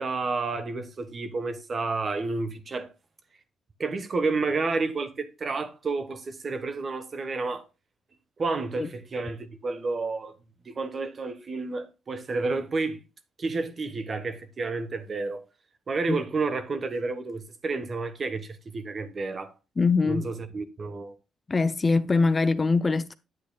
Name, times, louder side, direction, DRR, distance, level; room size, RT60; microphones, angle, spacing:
voice 1, 0.0-2.9 3.8-7.6 8.4-10.3 10.6-13.0 13.4-15.4 15.9-19.5 20.0-21.1, right 3 dB, 40° right, 1.1 m, -30 dB
voice 2, 19.8-20.3 21.5-23.1, left 4 dB, 30° left, 0.6 m, -23 dB
9.5 x 8.2 x 2.3 m
cardioid pair, 90°, 0 cm